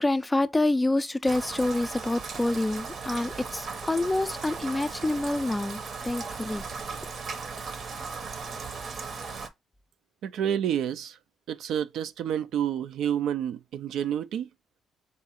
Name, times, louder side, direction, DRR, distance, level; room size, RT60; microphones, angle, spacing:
voice 1, 0.0-6.6 7.0-7.1, left 2 dB, 15° left, 0.3 m, -27 dB
Rain, 1.2-9.5, right 4 dB, 55° right, 0.8 m, -37 dB
voice 2, 10.2-11.2 11.5-14.5, right 9 dB, 80° right, 0.4 m, -29 dB
3.8 x 2.4 x 4.1 m
cardioid pair, 95°, 0 cm